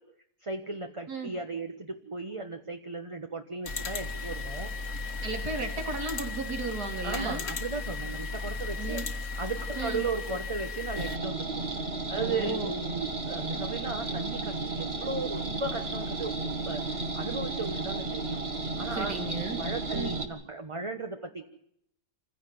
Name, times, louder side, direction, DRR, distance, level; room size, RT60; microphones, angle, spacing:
voice 1, 0.4-4.7 7.0-9.0 9.3-11.6 12.1-16.3 16.6-18.4 18.8-19.1 19.5-21.4, right 3 dB, 20° right, 5 dB, 1.1 m, -36 dB
sound 1, 3.6-11.2, left 3 dB, 50° left, 1.8 m, -35 dB
voice 2, 5.2-7.5 8.8-9.1 9.7-10.0 12.2-12.7 18.9-19.6 19.9-20.1, right 4 dB, 75° right, 4 dB, 3.6 m, -35 dB
sound 2, 11.0-20.2, right 3 dB, 40° right, 2.0 m, -33 dB
27.0 x 16.0 x 7.8 m, 0.73 s
omnidirectional pair, 1.7 m